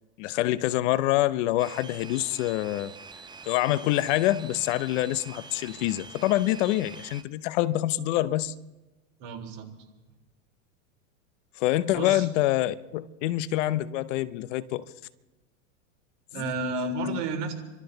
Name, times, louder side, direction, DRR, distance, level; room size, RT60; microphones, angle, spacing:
voice 1, 0.2-2.9 3.4-8.5 11.6-14.8 16.4-17.2, left 15 dB, 65° left, 0.9 m, -26 dB
sound 1, 1.6-7.2, right 4 dB, 10° right, 0.7 m, -45 dB
voice 2, 9.2-9.7 12.0-12.3 16.3-17.5, right 6 dB, 55° right, 3.6 m, -32 dB
27.5 x 13.0 x 4.0 m
supercardioid pair, 125°, 39 cm